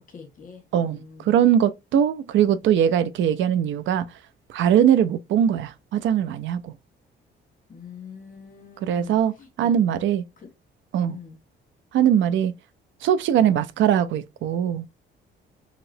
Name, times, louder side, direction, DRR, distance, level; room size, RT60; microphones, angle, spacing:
voice 1, 0.0-1.4 7.7-9.8 10.4-10.5 11.1-11.4 13.4-13.6, left 6 dB, 45° left, 1.3 m, -44 dB
voice 2, 0.7-4.1 4.5-6.7 8.9-9.3 9.6-10.2 10.9-11.2 11.9-12.5 13.0-14.9, right 9 dB, 75° right, 0.4 m, -21 dB
2.9 x 2.9 x 2.6 m
cardioid pair, 90°, 20 cm